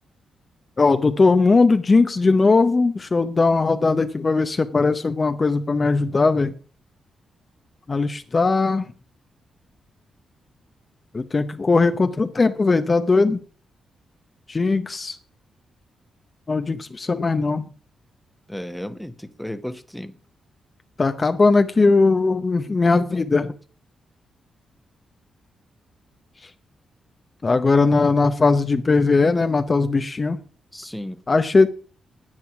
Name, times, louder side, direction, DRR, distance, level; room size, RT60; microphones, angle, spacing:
voice 1, 0.8-6.5 7.9-8.8 11.1-13.4 14.5-15.2 16.5-17.7 21.0-23.5 27.4-30.4 31.3-31.7, left 3 dB, 30° left, 8 dB, 0.7 m, -19 dB
voice 2, 18.5-20.1 30.7-31.2, equal, 5° left, 10 dB, 1.0 m, -34 dB
9.8 x 9.2 x 5.8 m, 0.40 s
cardioid pair, 105°, 0 cm